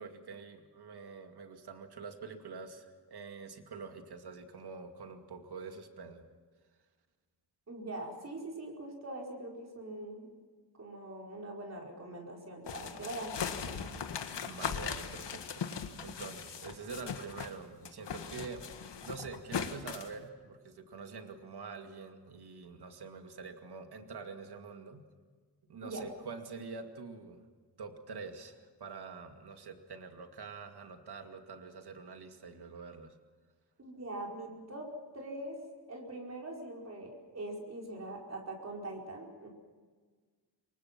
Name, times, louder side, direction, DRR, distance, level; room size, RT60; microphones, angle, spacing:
voice 1, 0.0-6.3 12.9-13.0 14.4-18.7 19.0-25.1 25.7-27.5 27.8-33.2, right 4 dB, 65° right, 5 dB, 2.4 m, -46 dB
voice 2, 7.7-10.3 10.8-13.8 25.8-26.0 33.8-35.6 35.9-39.5, right 1 dB, 40° right, 0 dB, 4.9 m, -43 dB
sound 1, 12.7-17.6 17.8-20.1, left 7 dB, 85° left, 1.8 m, -39 dB
27.5 x 23.5 x 6.0 m, 1.5 s
wide cardioid pair, 180°, 41 cm